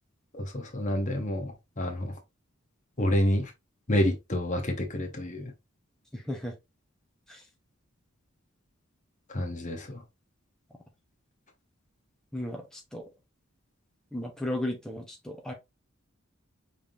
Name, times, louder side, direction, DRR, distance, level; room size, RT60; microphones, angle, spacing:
voice 1, 0.3-2.1 3.0-3.5 3.9-5.5 9.3-10.0, left 1 dB, 35° left, 1.1 m, -28 dB
voice 2, 6.1-6.5 7.3-7.4 12.3-13.0 14.1-15.5, left 1 dB, 5° left, 1.0 m, -35 dB
5.3 x 3.5 x 2.7 m
head